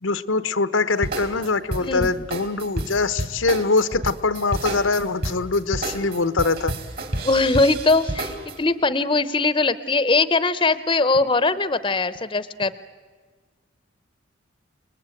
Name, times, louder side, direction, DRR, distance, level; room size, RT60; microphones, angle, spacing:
voice 1, 0.0-6.7, left 3 dB, 90° left, 12 dB, 0.9 m, -23 dB
sound 1, 1.0-8.5, right 1 dB, 50° right, 3.1 m, -29 dB
voice 2, 1.8-2.1 7.2-12.7, left 3 dB, 25° left, 15 dB, 0.7 m, -21 dB
29.5 x 20.0 x 9.0 m, 1.5 s
head